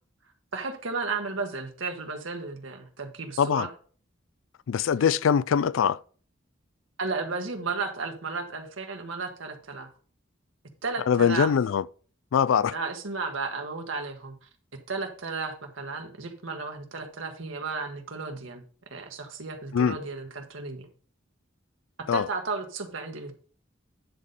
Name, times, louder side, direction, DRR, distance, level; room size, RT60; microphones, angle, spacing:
voice 1, 0.5-3.7 7.0-9.9 10.8-11.5 12.7-18.6 18.9-20.9 22.0-23.3, right 4 dB, 85° right, 1.6 m, -34 dB
voice 2, 4.7-6.0 11.1-11.8 12.3-12.7 19.7-20.0 22.1-22.2, left 7 dB, 90° left, 0.3 m, -22 dB
9.9 x 4.2 x 5.2 m
head